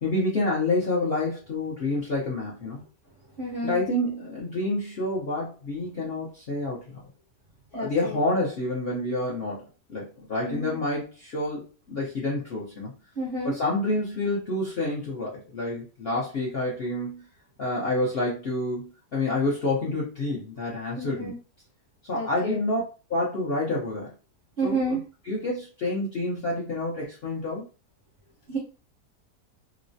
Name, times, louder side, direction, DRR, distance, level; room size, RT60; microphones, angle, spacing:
voice 1, 0.0-2.8 3.6-7.1 7.7-9.6 9.9-12.9 13.4-17.2 17.6-21.3 22.0-22.8 23.1-24.1 24.6-25.0 25.2-27.6, left 2 dB, 60° left, -6 dB, 0.6 m, -28 dB
voice 2, 3.4-3.8 7.7-8.2 10.4-10.8 13.2-13.6 21.0-21.3 22.1-22.6 24.6-25.0 28.5-28.6, right 2 dB, 50° right, -4 dB, 0.6 m, -30 dB
3.0 x 2.1 x 2.6 m, 0.34 s
omnidirectional pair, 1.8 m